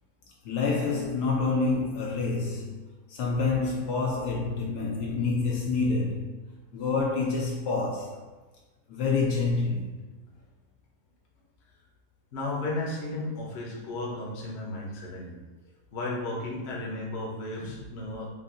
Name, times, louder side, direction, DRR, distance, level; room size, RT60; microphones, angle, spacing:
voice 1, 0.4-2.8 3.1-6.3 6.7-8.2 8.9-9.9 17.6-17.7, left 4 dB, 70° left, 1.2 m, -27 dB
voice 2, 12.3-15.4 15.9-18.3, left 2 dB, 45° left, 1.0 m, -34 dB
5.3 x 2.5 x 3.7 m
omnidirectional pair, 1.9 m